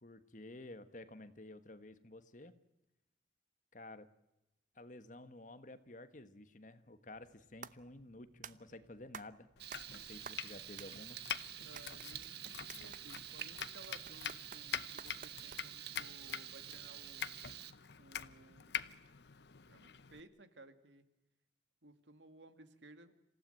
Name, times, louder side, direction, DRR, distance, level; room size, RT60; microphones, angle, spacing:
voice 1, 0.0-2.5 3.7-4.1 4.7-9.5 9.9-11.2, left 2 dB, 45° left, 11 dB, 1.4 m, -52 dB
sound 1, 7.1-15.9, right 6 dB, 45° right, 0.7 m, -53 dB
Domestic sounds home sounds, 9.6-20.2, left 8 dB, 70° left, 0.8 m, -46 dB
Frying (food), 9.6-17.7, right 11 dB, 65° right, 1.2 m, -49 dB
voice 2, 11.6-17.4 18.0-18.9 19.7-21.0 21.8-23.1, right 2 dB, 90° right, 10 dB, 2.1 m, -59 dB
27.0 x 16.0 x 9.1 m, 0.95 s
head